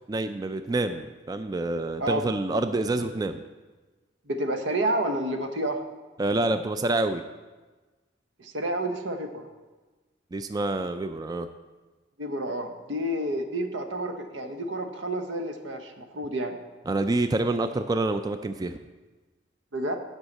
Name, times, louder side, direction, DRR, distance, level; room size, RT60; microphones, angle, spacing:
voice 1, 0.1-3.4 6.2-7.2 10.3-11.5 16.9-18.8, right 2 dB, 20° right, 9 dB, 0.3 m, -27 dB
voice 2, 4.3-5.8 8.4-9.5 12.2-16.6 19.7-20.0, right 1 dB, 85° right, 6 dB, 1.0 m, -29 dB
8.0 x 5.6 x 7.2 m, 1.3 s
head